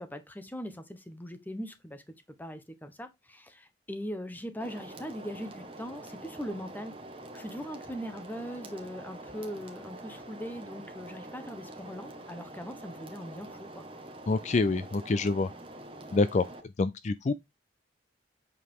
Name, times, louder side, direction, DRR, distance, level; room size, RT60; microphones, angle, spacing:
voice 1, 0.0-2.0 2.4-7.0 7.3-13.9, equal, 10° left, 1.1 m, -40 dB
sound 1, 4.6-16.6, right 1 dB, 30° right, 1.6 m, -46 dB
voice 2, 14.3-15.5 16.1-16.4 16.8-17.3, left 3 dB, 40° left, 0.4 m, -26 dB
8.2 x 4.8 x 3.7 m
head